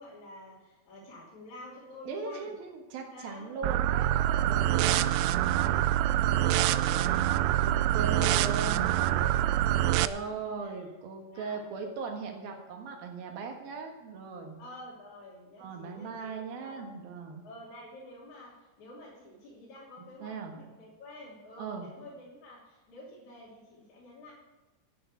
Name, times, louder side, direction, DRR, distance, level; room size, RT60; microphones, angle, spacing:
voice 1, 0.0-2.5 3.1-3.8 4.1-5.4 5.7-8.7 9.0-10.1 10.6-10.9 11.3-11.6 12.5-12.6 14.6-16.9 17.4-24.3, left 1 dB, 45° left, -6 dB, 4.0 m, -48 dB
voice 2, 2.0-5.1 5.5-5.8 7.5-8.9 10.0-14.6 15.6-17.5 20.0-20.5 21.6-21.9, right 4 dB, 65° right, 3 dB, 3.1 m, -39 dB
sound 1, 3.6-10.1, right 13 dB, 85° right, 2.3 m, -25 dB
9.8 x 9.2 x 8.4 m, 1.1 s
omnidirectional pair, 5.2 m